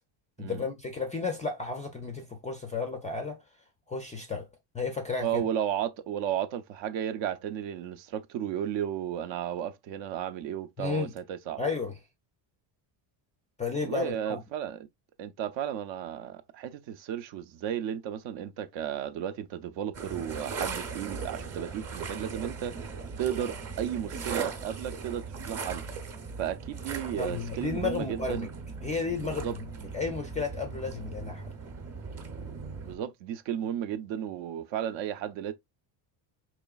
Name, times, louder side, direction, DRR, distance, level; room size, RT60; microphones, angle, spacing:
voice 1, 0.4-3.4 3.9-4.5 4.7-5.4 10.8-11.1 11.6-12.0 13.6-14.4 27.2-28.5 28.8-29.5 29.9-31.5, left 4 dB, 15° left, 0.3 m, -33 dB
voice 2, 5.2-11.6 13.8-14.9 15.2-22.7 23.2-25.8 26.4-28.5 29.2-29.5 32.9-35.5, right 10 dB, 60° right, 0.6 m, -34 dB
sound 1, 19.9-33.0, right 5 dB, 30° right, 0.8 m, -38 dB
4.9 x 3.1 x 2.3 m
cardioid pair, 150°, 49 cm